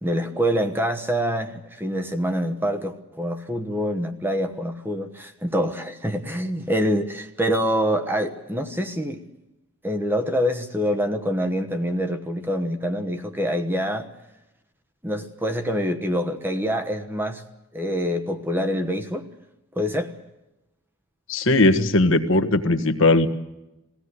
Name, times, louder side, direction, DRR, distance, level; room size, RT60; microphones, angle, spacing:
voice 1, 0.0-9.2 9.8-14.1 15.0-17.4 17.7-19.2 19.7-20.1, equal, 10° right, 1.2 m, -25 dB
voice 2, 21.3-23.3, left 2 dB, 60° left, 1.5 m, -18 dB
21.5 x 16.5 x 9.8 m
head